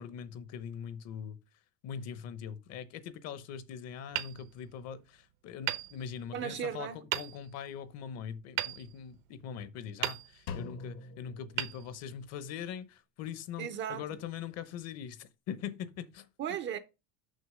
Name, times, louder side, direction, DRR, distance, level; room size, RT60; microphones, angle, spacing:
voice 1, 0.0-1.4 1.8-16.3, left 8 dB, 40° left, 0.8 m, -42 dB
Hammer, 4.1-5.1 5.6-6.6 7.1-7.7 8.6-9.5 10.0-10.7 11.5-12.5, right 15 dB, 75° right, 1.1 m, -38 dB
voice 2, 6.3-7.0 13.6-14.0 16.4-16.8, right 9 dB, 30° right, 0.5 m, -36 dB
Drum, 10.5-12.4, left 4 dB, 80° left, 1.8 m, -44 dB
6.5 x 5.9 x 4.8 m
cardioid pair, 160°, 39 cm